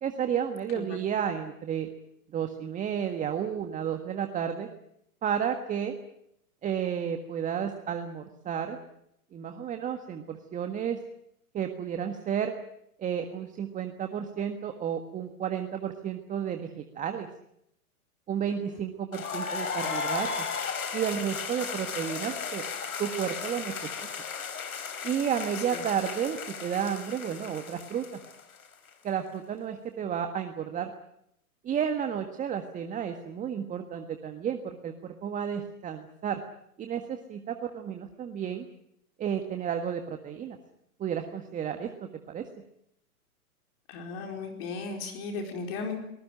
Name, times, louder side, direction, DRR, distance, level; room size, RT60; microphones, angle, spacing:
voice 1, 0.0-1.9 2.3-4.7 5.2-6.0 6.6-8.8 9.3-11.0 11.5-12.5 13.0-17.3 18.3-20.5 20.9-22.6 23.0-23.9 25.0-28.2 29.0-30.9 31.6-36.4 36.8-38.7 39.2-40.6 41.0-42.4, right 8 dB, 15° right, 6 dB, 1.6 m, -32 dB
sound 1, 19.1-28.9, left 6 dB, 70° left, 4.1 m, -35 dB
voice 2, 43.9-46.0, left 4 dB, 40° left, 3 dB, 4.6 m, -36 dB
24.5 x 19.5 x 9.0 m, 0.77 s
figure-of-eight pair, 115°, 44 cm